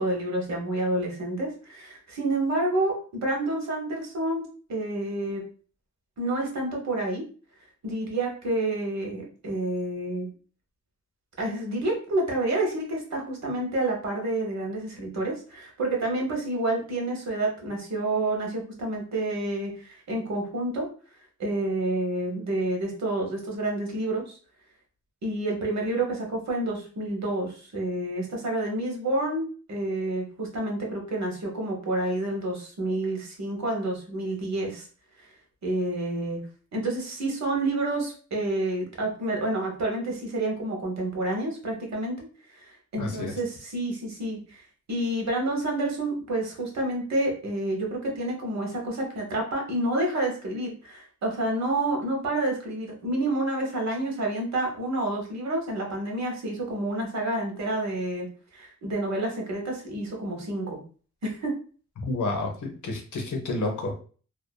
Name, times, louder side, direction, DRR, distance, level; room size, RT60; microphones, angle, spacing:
voice 1, 0.0-5.4 6.2-7.2 7.8-10.3 11.4-20.9 21.4-24.3 25.2-34.8 35.6-36.4 36.7-42.3 42.6-44.6 44.9-58.3 58.5-60.8 61.2-61.5, right 2 dB, 65° right, 0 dB, 0.9 m, -29 dB
voice 2, 43.0-43.3 62.1-64.0, left 2 dB, 80° left, 2 dB, 0.7 m, -30 dB
2.5 x 2.4 x 2.2 m, 0.40 s
wide cardioid pair, 130°, 30 cm